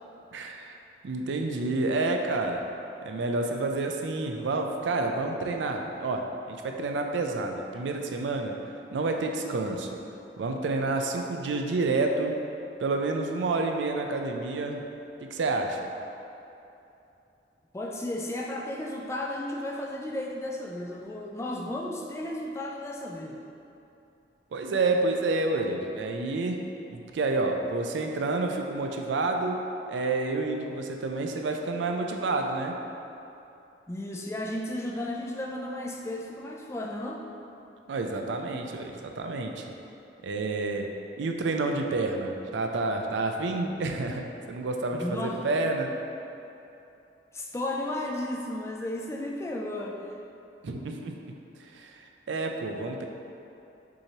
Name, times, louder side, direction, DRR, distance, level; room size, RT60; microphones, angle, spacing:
voice 1, 0.3-0.7 1.0-2.6 3.0-8.6 8.9-9.9 10.4-12.4 12.8-14.8 15.3-15.9 24.5-26.6 26.9-29.6 29.9-32.7 37.9-39.6 40.2-40.9 41.2-45.9 50.6-51.2 51.7-51.9 52.3-53.0, right 3 dB, 80° right, 3 dB, 0.4 m, -29 dB
voice 2, 17.7-23.4 33.9-37.2 44.9-45.4 47.3-50.1, left 1 dB, 15° left, -1 dB, 0.3 m, -34 dB
6.2 x 3.0 x 2.8 m, 2.8 s
head